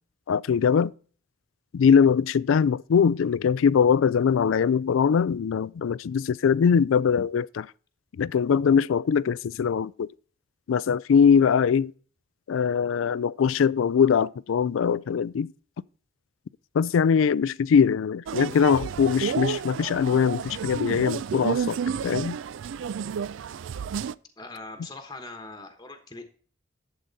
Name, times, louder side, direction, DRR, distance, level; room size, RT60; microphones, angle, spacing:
voice 1, 0.3-0.9 1.7-7.7 8.2-10.1 10.7-11.9 12.5-15.5 16.7-21.8 22.0-22.4, left 6 dB, 80° left, 0.3 m, -22 dB
sound 1, 18.3-24.1, right 7 dB, 75° right, 0.3 m, -31 dB
voice 2, 24.4-26.2, left 2 dB, 20° left, 1.1 m, -41 dB
11.5 x 7.8 x 4.1 m
head